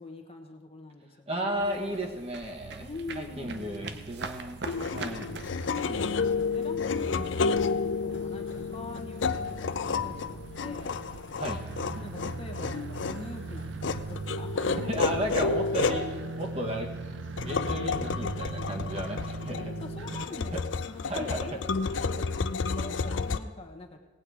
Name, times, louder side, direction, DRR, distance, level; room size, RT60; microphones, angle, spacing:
voice 1, 0.0-2.0 2.8-4.1 5.7-11.0 12.0-14.8 19.8-24.0, left 2 dB, 35° left, 3 dB, 1.3 m, -44 dB
voice 2, 1.3-2.8 3.1-5.3 11.4-11.6 11.9-12.3 14.8-16.9 17.4-19.7 20.1-20.2 20.5-20.6 21.0-21.5, right 1 dB, 35° right, 1 dB, 1.6 m, -34 dB
sound 1, 1.5-16.6, right 4 dB, 65° right, 0.8 m, -47 dB
sound 2, 2.6-20.2, right 4 dB, 85° right, 0.4 m, -41 dB
sound 3, 4.6-23.4, left 4 dB, 90° left, 0.5 m, -31 dB
18.0 x 8.7 x 4.9 m, 1.2 s
head